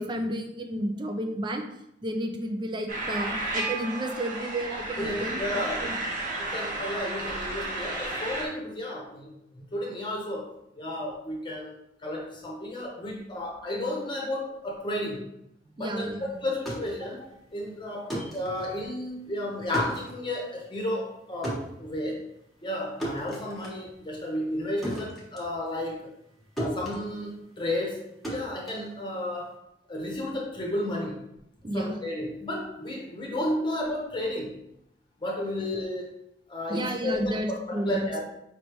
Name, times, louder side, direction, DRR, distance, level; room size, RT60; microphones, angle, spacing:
voice 1, 0.0-1.6 2.0-6.0 15.8-16.2 31.6-31.9 36.7-38.1, right 1 dB, 25° right, 4 dB, 0.5 m, -31 dB
sound 1, 2.9-8.4, right 2 dB, 45° right, 1.2 m, -32 dB
voice 2, 5.0-5.8 6.4-11.8 12.0-15.3 15.8-17.2 17.5-22.2 22.6-26.0 26.6-29.6 29.9-31.2 31.7-34.6 35.2-36.1 36.5-38.2, left 1 dB, 25° left, -2 dB, 0.9 m, -32 dB
sound 2, 16.4-26.3 26.6-29.5, right 1 dB, ahead, 1.2 m, -37 dB
5.2 x 3.3 x 3.0 m, 0.79 s
head